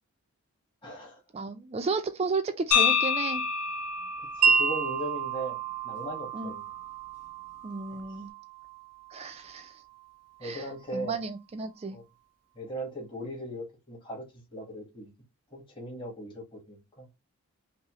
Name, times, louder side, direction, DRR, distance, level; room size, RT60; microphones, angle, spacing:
voice 1, 0.8-1.2 4.4-6.6 10.4-11.2 11.9-12.0 12.5-14.2 14.5-15.1 15.5-17.1, right 1 dB, 20° left, 1.3 m, -38 dB
voice 2, 1.3-3.4 6.3-6.5 7.6-8.3 9.1-9.8 10.4-12.0, right 4 dB, 30° right, 0.3 m, -33 dB
sound 1, 2.7-6.8, left 6 dB, 85° left, 1.1 m, -29 dB
Wind chime, 4.4-10.5, right 6 dB, 90° right, 0.5 m, -31 dB
5.4 x 2.0 x 2.9 m
head